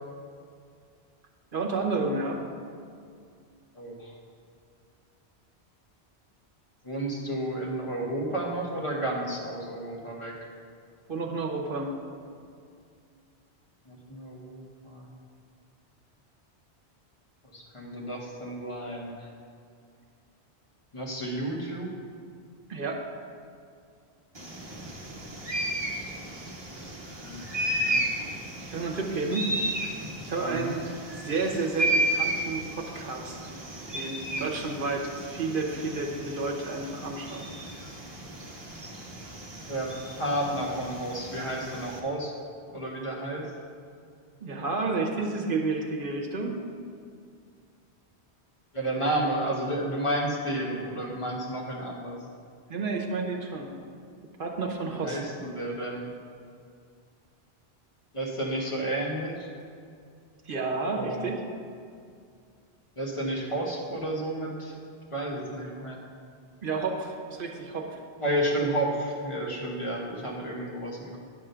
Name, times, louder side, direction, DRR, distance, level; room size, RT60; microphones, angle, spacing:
voice 1, 1.5-2.4 11.1-11.9 22.7-23.0 28.6-29.4 30.2-30.8 31.1-33.4 33.9-37.5 44.4-46.5 52.7-53.7 54.4-55.2 60.5-61.4 66.6-68.0, right 3 dB, 55° right, 1 dB, 1.0 m, -31 dB
voice 2, 3.7-4.1 6.8-10.4 13.8-15.1 17.5-19.3 20.9-21.9 27.2-27.4 27.8-28.0 30.4-30.8 39.7-42.3 42.7-43.5 48.7-52.2 54.9-56.1 58.1-59.5 60.9-61.3 63.0-64.7 65.1-66.0 68.2-71.2, right 1 dB, 30° left, -2 dB, 1.3 m, -31 dB
sound 1, 24.3-42.0, right 1 dB, 25° right, 0.9 m, -34 dB
10.0 x 3.7 x 6.8 m, 2.3 s
omnidirectional pair, 1.1 m